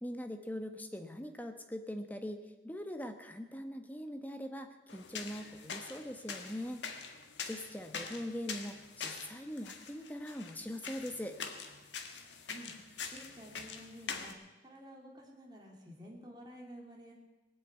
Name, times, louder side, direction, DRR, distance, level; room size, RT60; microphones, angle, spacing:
voice 1, 0.0-6.8 7.4-11.4, equal, 10° left, 6 dB, 1.2 m, -42 dB
sound 1, 4.9-14.3, left 5 dB, 80° left, 1.5 m, -45 dB
voice 2, 13.1-14.4 14.6-17.1, equal, 25° right, -1 dB, 3.3 m, -51 dB
19.5 x 8.6 x 8.3 m, 1.1 s
head